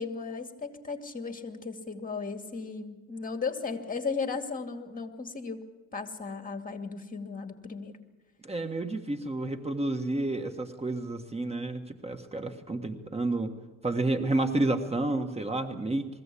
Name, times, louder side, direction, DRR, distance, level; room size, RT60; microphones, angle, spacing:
voice 1, 0.0-8.0, left 4 dB, 25° left, 6 dB, 2.4 m, -36 dB
voice 2, 8.4-13.5 13.8-16.1, right 2 dB, 20° right, 6 dB, 1.6 m, -30 dB
21.5 x 16.0 x 8.5 m, 1.2 s
cardioid pair, 90°, 30 cm